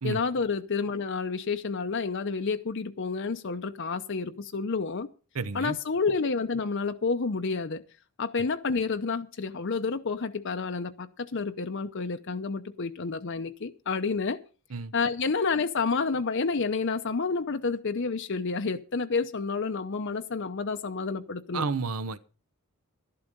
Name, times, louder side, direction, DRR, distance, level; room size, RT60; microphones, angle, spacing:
voice 1, 0.0-5.1 5.5-7.8 8.2-14.4 14.9-21.7, left 4 dB, 55° left, 0.7 m, -29 dB
voice 2, 5.3-5.8 14.7-14.9 21.5-22.2, right 4 dB, 80° right, 0.9 m, -31 dB
12.0 x 11.5 x 5.3 m
head